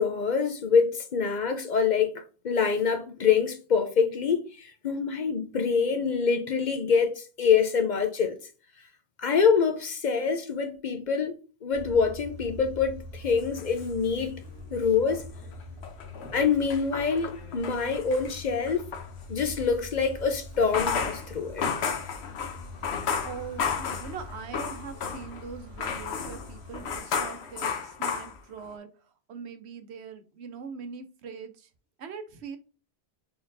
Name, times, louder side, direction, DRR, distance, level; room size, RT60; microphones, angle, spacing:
voice 1, 0.0-2.1 2.4-8.4 9.2-14.4 14.7-15.2 16.3-18.9 19.3-21.7, left 6 dB, 50° left, 0.7 m, -25 dB
sound 1, 11.7-27.0, left 2 dB, 20° left, 1.6 m, -44 dB
sound 2, 13.4-14.6 14.9-19.1 20.5-25.4 25.8-28.7, left 6 dB, 85° left, 1.1 m, -33 dB
voice 2, 23.2-28.9 29.3-31.7 32.0-32.6, right 6 dB, 90° right, 1.0 m, -41 dB
4.3 x 3.9 x 2.6 m
omnidirectional pair, 1.1 m